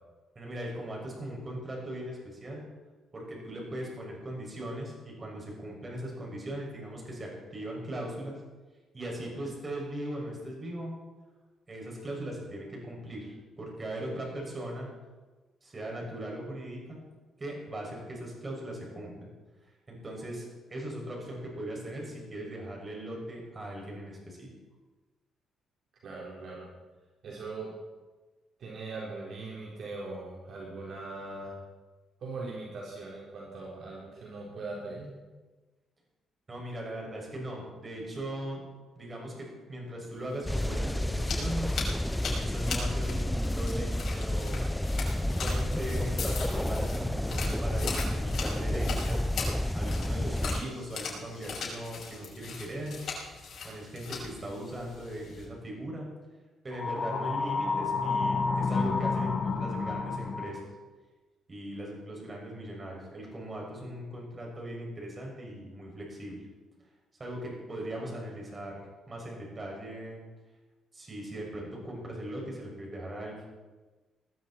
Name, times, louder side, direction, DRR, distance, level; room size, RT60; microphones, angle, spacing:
voice 1, 0.3-2.6 3.1-8.4 8.9-10.9 11.7-14.9 15.6-17.0 17.4-19.3 19.9-24.5 36.5-38.6 39.0-41.7 42.3-44.7 45.2-49.2 49.7-53.0 53.6-56.1 56.6-60.6 61.5-66.4 67.2-68.8 69.1-70.2 70.9-73.3, right 1 dB, 30° right, -1 dB, 6.6 m, -39 dB
voice 2, 26.0-26.7 27.2-27.7 28.6-31.6 32.2-35.1, right 3 dB, 65° right, -3 dB, 3.9 m, -40 dB
sound 1, 40.2-55.4, left 4 dB, 60° left, 6.2 m, -40 dB
sound 2, 40.5-50.6, left 1 dB, 5° left, 0.5 m, -30 dB
sound 3, 56.7-60.7, left 4 dB, 45° left, 1.9 m, -30 dB
20.0 x 13.5 x 4.5 m, 1.2 s
cardioid pair, 90°, 0 cm